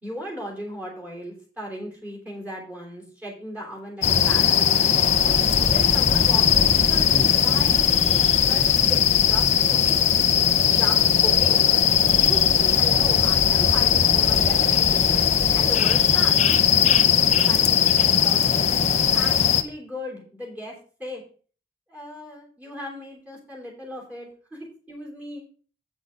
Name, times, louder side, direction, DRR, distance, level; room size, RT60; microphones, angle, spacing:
voice 1, 0.0-5.4 5.7-7.1 7.4-9.4 9.7-10.1 10.7-11.6 12.2-15.2 15.5-16.4 16.7-18.7 19.1-21.2 21.9-25.5, equal, 10° right, -2 dB, 3.2 m, -37 dB
sound 1, 4.0-19.6, left 8 dB, 40° left, 0.6 m, -19 dB
8.6 x 6.2 x 5.1 m, 0.41 s
head